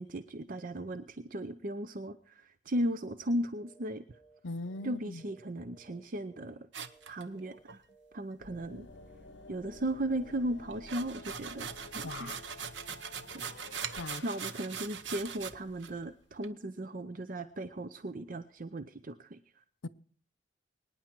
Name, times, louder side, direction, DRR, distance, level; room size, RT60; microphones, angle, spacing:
voice 1, 0.0-4.0 4.8-6.7 7.0-7.8 8.1-8.9 9.5-11.7 11.9-12.5 12.9-13.0 13.3-13.5 14.2-19.6, right 1 dB, 45° right, 0.6 m, -36 dB
sound 1, 3.6-3.9 4.1-4.4 4.7-6.0 6.3-6.6 6.8-7.1 7.3-7.6 7.9-8.2 8.4-8.7 9.0-9.2 9.5-9.8 10.0-10.3, right 3 dB, 10° left, 2.0 m, -61 dB
voice 2, 4.4-5.2 12.0-12.4 14.0-14.2 19.8-19.9, left 2 dB, 90° left, 0.7 m, -40 dB
sound 2, 6.7-7.8 10.7-15.5 15.8-15.9 16.4-16.5, right 7 dB, 75° right, 0.9 m, -41 dB
sound 3, 8.4-16.5, left 3 dB, 70° left, 1.0 m, -52 dB
24.5 x 9.9 x 4.5 m
head